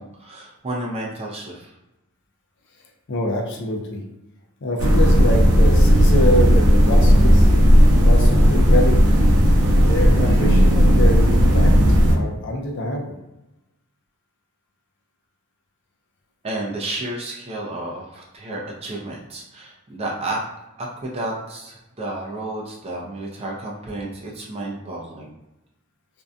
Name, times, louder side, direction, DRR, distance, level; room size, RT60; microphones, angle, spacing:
voice 1, 0.0-1.8 16.4-20.5 20.8-25.3, right 2 dB, 25° right, -3 dB, 0.4 m, -31 dB
voice 2, 3.1-4.0 4.6-7.5 8.0-9.1 9.8-11.7 12.1-13.1, equal, 55° left, 1 dB, 0.4 m, -25 dB
sound 1, 4.8-12.2, equal, 80° right, 0.6 m, -14 dB
2.6 x 2.1 x 2.4 m, 0.96 s
head